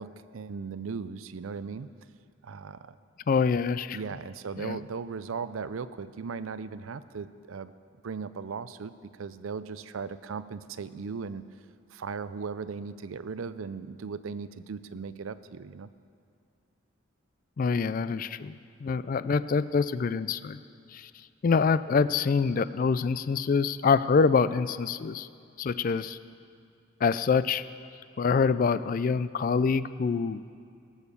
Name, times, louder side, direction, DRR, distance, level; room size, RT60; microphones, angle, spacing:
voice 1, 0.0-1.9 2.4-3.0 3.9-7.7 8.0-11.4 11.9-15.9, right 5 dB, 90° right, 14 dB, 0.5 m, -37 dB
voice 2, 3.3-4.0 4.6-4.8 17.6-18.6 18.8-20.6 20.9-21.1 21.4-25.3 25.6-26.2 27.0-27.6 28.2-30.4, left 5 dB, 45° left, 15 dB, 0.3 m, -25 dB
18.5 x 7.2 x 6.8 m, 2.3 s
head